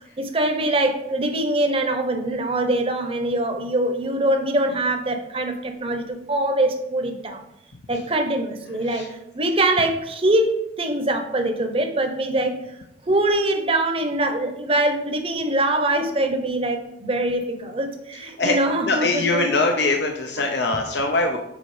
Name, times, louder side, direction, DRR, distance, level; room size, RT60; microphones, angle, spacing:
voice 1, 0.0-7.4 7.9-9.1 9.3-12.6 13.1-19.5, right 1 dB, 30° right, 5 dB, 0.9 m, -23 dB
voice 2, 18.9-21.4, left 2 dB, 70° left, 2 dB, 0.8 m, -22 dB
8.0 x 4.4 x 5.1 m, 0.80 s
head